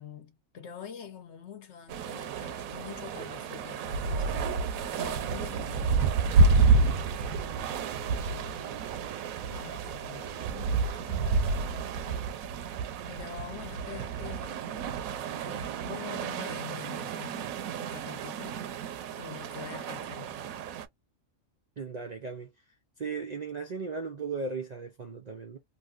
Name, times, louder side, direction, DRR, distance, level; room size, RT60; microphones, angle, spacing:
voice 1, 0.0-7.7 8.2-8.8 9.5-12.3 13.1-14.9 15.4-18.7 19.1-20.4, left 8 dB, 65° left, 0.8 m, -46 dB
sound 1, 1.9-20.9, right 4 dB, 85° right, 1.0 m, -30 dB
voice 2, 21.8-22.5 23.0-25.6, right 4 dB, 60° right, 0.4 m, -36 dB
3.0 x 2.6 x 2.3 m
omnidirectional pair, 1.4 m